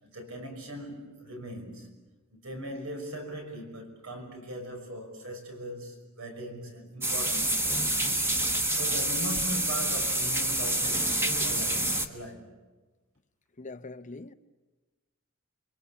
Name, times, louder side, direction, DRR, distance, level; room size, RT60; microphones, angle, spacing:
voice 1, 0.0-1.9 2.3-7.9 8.4-12.5, equal, 75° right, 5.9 m, -40 dB
sound 1, 7.0-12.1, right 1 dB, 10° right, 1.3 m, -27 dB
voice 2, 13.6-14.3, left 3 dB, 35° left, 0.7 m, -42 dB
28.0 x 23.5 x 7.1 m
head